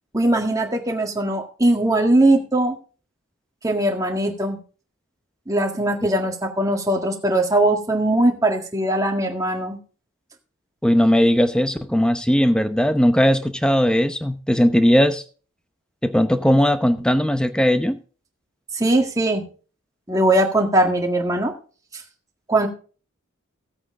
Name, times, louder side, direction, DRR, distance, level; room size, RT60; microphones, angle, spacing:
voice 1, 0.1-2.8 3.6-4.6 5.5-9.8 18.7-19.4 20.1-21.5 22.5-22.7, right 1 dB, 15° right, 2 dB, 1.8 m, -20 dB
voice 2, 10.8-15.2 16.0-18.0, equal, 5° left, 10 dB, 0.8 m, -18 dB
15.5 x 8.7 x 3.7 m, 0.39 s
head